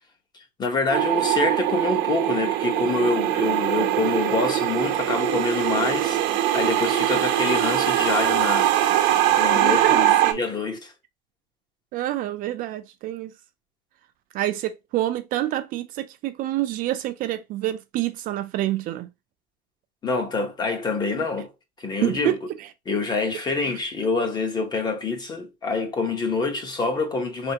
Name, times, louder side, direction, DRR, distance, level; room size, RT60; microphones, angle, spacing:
voice 1, 0.3-6.2 6.5-10.9 20.0-21.5 21.8-22.4 22.9-27.5, left 3 dB, 25° left, 0.8 m, -26 dB
sound 1, 0.9-10.3, right 12 dB, 85° right, 0.8 m, -22 dB
voice 2, 9.5-10.4 11.9-13.3 14.3-19.1 22.0-22.4 23.6-23.7, right 14 dB, 50° right, 0.4 m, -27 dB
4.3 x 3.4 x 2.7 m
cardioid pair, 175°, 18 cm